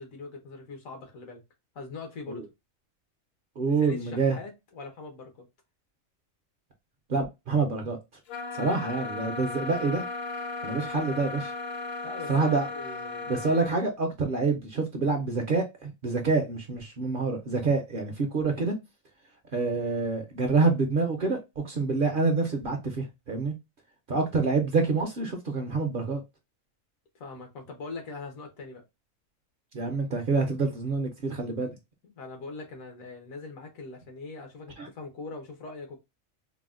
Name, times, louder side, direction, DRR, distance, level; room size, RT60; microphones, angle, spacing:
voice 1, 0.0-1.4 1.7-2.5 3.8-5.5 12.0-13.3 27.1-28.8 32.0-36.0, left 3 dB, 80° left, 1.4 m, -42 dB
voice 2, 3.6-4.4 7.1-8.0 8.5-10.0 10.6-11.5 12.3-12.7 13.3-18.7 19.5-23.5 24.1-26.2 29.7-31.7 34.8-34.9, right 4 dB, 55° right, 0.6 m, -27 dB
sound 1, 8.3-13.8, left 3 dB, 60° left, 0.8 m, -36 dB
3.9 x 2.1 x 2.4 m
omnidirectional pair, 1.4 m